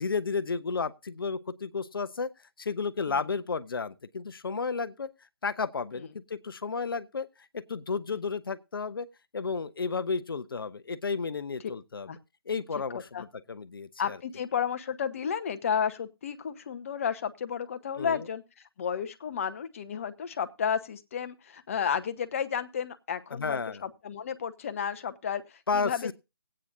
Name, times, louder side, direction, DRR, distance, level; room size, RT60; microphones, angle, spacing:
voice 1, 0.0-5.1 5.4-9.1 9.3-12.1 12.5-14.2 18.0-18.3 23.3-23.8 25.7-26.1, left 5 dB, 65° left, 15 dB, 0.7 m, -32 dB
voice 2, 14.0-18.4 18.8-26.1, left 7 dB, 35° left, 11 dB, 0.9 m, -32 dB
19.0 x 8.7 x 2.6 m, 0.26 s
figure-of-eight pair, 155°, 13 cm